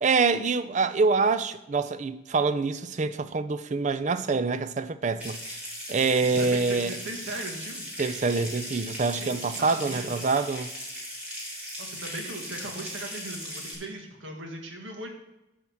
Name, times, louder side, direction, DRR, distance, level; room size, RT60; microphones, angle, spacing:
voice 1, 0.0-5.4 5.9-6.9 8.0-10.7, right 4 dB, 35° right, 0.4 m, -25 dB
Water tap faucet / Sink (filling or washing) / Trickle dribble, 5.2-13.7, equal, 5° right, 2.1 m, -38 dB
voice 2, 6.2-7.9 9.2-10.1 11.8-15.1, right 2 dB, 80° right, 1.7 m, -38 dB
10.5 x 3.6 x 7.0 m
head